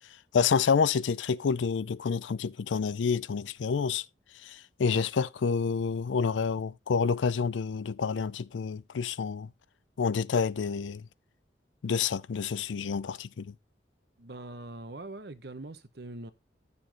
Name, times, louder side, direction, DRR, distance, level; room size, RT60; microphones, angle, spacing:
voice 1, 0.3-4.1 4.4-9.5 10.0-11.1 11.8-13.5, left 5 dB, 85° left, 0.4 m, -28 dB
voice 2, 14.2-16.3, right 2 dB, 60° right, 1.0 m, -42 dB
12.5 x 6.9 x 3.0 m
head